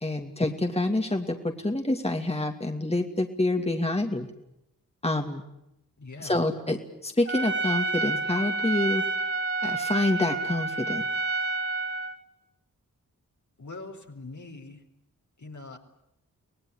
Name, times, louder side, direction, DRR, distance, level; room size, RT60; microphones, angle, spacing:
voice 1, 0.0-4.3 5.0-5.4 6.2-9.0 9.6-11.1, left 2 dB, 20° left, 4 dB, 2.6 m, -27 dB
voice 2, 6.0-6.5 13.6-14.8 15.4-15.8, left 3 dB, 60° left, 3 dB, 4.2 m, -42 dB
Trumpet, 7.3-12.2, right 3 dB, 40° right, 3.8 m, -29 dB
25.0 x 18.0 x 10.0 m, 0.84 s
cardioid pair, 45°, 34 cm